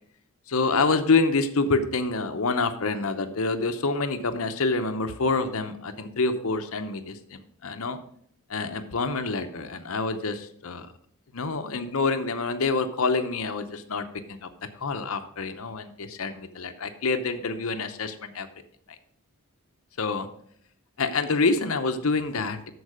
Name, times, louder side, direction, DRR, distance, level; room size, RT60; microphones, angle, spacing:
voice 1, 0.5-8.0 8.5-10.9 11.3-14.5 14.8-18.5 20.0-20.3 21.0-22.7, left 3 dB, 70° left, 8 dB, 0.8 m, -27 dB
13.0 x 4.8 x 4.9 m, 0.64 s
head